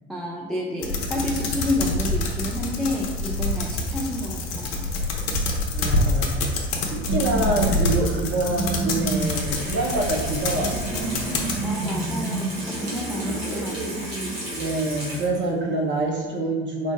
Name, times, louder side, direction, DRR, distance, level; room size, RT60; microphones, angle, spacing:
voice 1, 0.1-4.9 11.6-14.3, left 1 dB, ahead, -2 dB, 0.4 m, -30 dB
sound 1, 0.8-11.6, left 2 dB, 65° left, 0.7 m, -26 dB
voice 2, 5.7-6.5 6.9-11.3 14.6-16.9, right 2 dB, 40° right, 0 dB, 0.9 m, -26 dB
sound 2, 6.9-14.7, right 3 dB, 55° right, 0.6 m, -30 dB
Water tap faucet / Sink (filling or washing), 8.9-15.6 15.9-16.0, equal, 90° right, 1.2 m, -35 dB
4.5 x 2.1 x 3.0 m, 1.3 s
hypercardioid pair, 65°, 31 cm